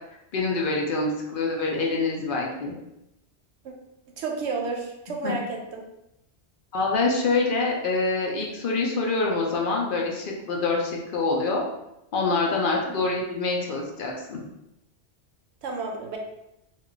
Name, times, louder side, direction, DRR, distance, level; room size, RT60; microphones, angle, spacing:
voice 1, 0.3-2.7 5.2-5.3 6.7-11.6 12.1-14.4, left 3 dB, 60° left, -1 dB, 0.7 m, -25 dB
voice 2, 4.2-5.8 12.8-13.0 15.6-16.2, right 4 dB, 90° right, 1 dB, 0.9 m, -31 dB
2.3 x 2.3 x 3.7 m, 0.86 s
omnidirectional pair, 1.1 m